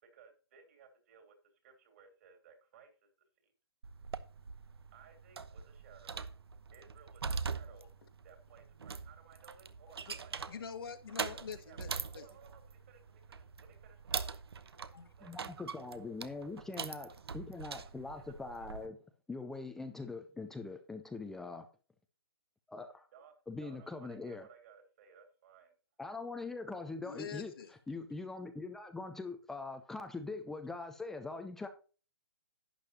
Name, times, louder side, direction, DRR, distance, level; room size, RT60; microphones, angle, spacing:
voice 1, 0.0-1.3 1.6-3.1 3.4-3.5 4.9-6.2 6.7-7.9 8.2-10.6 11.3-15.6 18.1-18.3 23.1-25.7, right 7 dB, 35° right, 6 dB, 3.0 m, -60 dB
sound 1, 3.8-18.9, right 5 dB, 75° right, 1.0 m, -43 dB
voice 2, 10.5-12.3 14.9-15.1 27.0-27.7, left 7 dB, 65° left, 5 dB, 1.6 m, -45 dB
voice 3, 15.2-19.0 19.3-21.7 22.7-23.1 23.5-24.5 26.0-27.5 27.9-31.7, left 3 dB, 5° left, 7 dB, 0.5 m, -42 dB
11.5 x 8.9 x 2.8 m, 0.35 s
hypercardioid pair, 160°, 13 cm